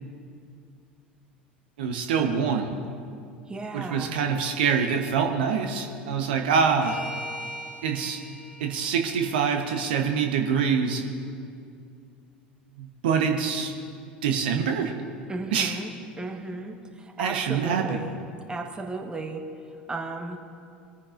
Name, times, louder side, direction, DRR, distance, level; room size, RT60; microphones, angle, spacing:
voice 1, 1.8-2.8 3.7-7.0 7.8-8.2 8.6-11.0 12.8-13.7 14.0-14.9 15.5-15.8 17.2-18.0, right 6 dB, 65° right, 4 dB, 1.1 m, -25 dB
voice 2, 3.5-4.3 15.3-18.2 18.5-19.4 19.9-20.4, right 3 dB, 15° right, 3 dB, 1.4 m, -35 dB
sound 1, 6.8-11.0, equal, 85° left, 2.1 m, -42 dB
22.5 x 9.7 x 2.6 m, 2.4 s
figure-of-eight pair, 75°, 6 cm